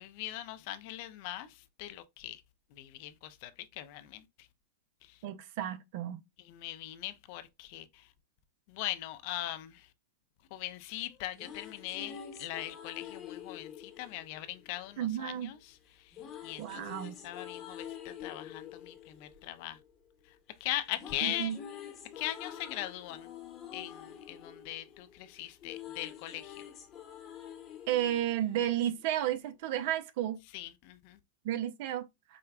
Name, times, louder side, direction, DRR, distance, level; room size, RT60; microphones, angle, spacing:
voice 1, 0.0-2.4 2.7-4.5 5.0-5.2 6.4-8.1 8.7-9.9 10.5-16.2 16.4-19.8 20.6-21.5 22.2-23.3 23.7-26.6 30.5-31.2, left 14 dB, 50° left, 0.4 m, -40 dB
voice 2, 5.2-6.2 15.0-15.5 16.6-17.1 21.2-21.6 27.9-30.4 31.4-32.0, right 11 dB, 55° right, 0.5 m, -32 dB
sound 1, 11.1-15.3 16.1-20.4 20.6-29.1, left 9 dB, 30° left, 0.9 m, -47 dB
4.8 x 2.2 x 2.4 m
hypercardioid pair, 100°, 0 cm